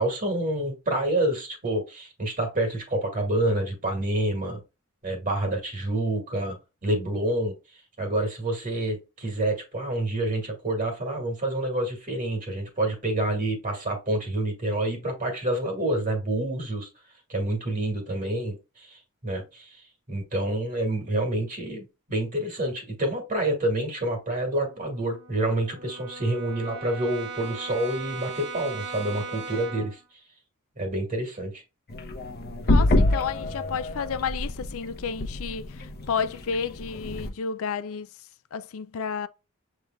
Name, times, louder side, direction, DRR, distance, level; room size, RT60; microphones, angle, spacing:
voice 1, 0.0-4.6 5.0-6.6 6.8-7.5 8.0-16.9 17.3-19.8 20.1-30.0 30.8-31.6, right 1 dB, 35° right, 1.9 m, -28 dB
Brass instrument, 24.5-30.0, right 3 dB, 80° right, 1.2 m, -39 dB
sound 1, 31.9-37.3, left 1 dB, 45° left, 0.8 m, -26 dB
voice 2, 32.7-38.1 38.5-39.3, left 6 dB, 65° left, 0.4 m, -31 dB
7.2 x 3.3 x 2.3 m
head